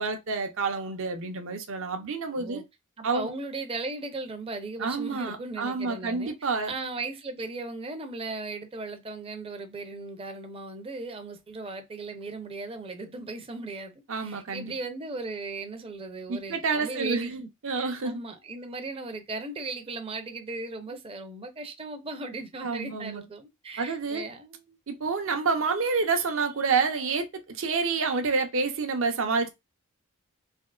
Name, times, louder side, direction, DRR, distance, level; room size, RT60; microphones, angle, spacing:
voice 1, 0.0-2.6 3.0-3.3 4.8-6.7 14.1-14.8 16.3-18.2 22.6-23.2 23.8-24.3 24.9-29.5, right 4 dB, 60° right, 0.7 m, -28 dB
voice 2, 3.0-24.8, right 3 dB, 25° right, 0.5 m, -37 dB
3.5 x 2.8 x 2.3 m
head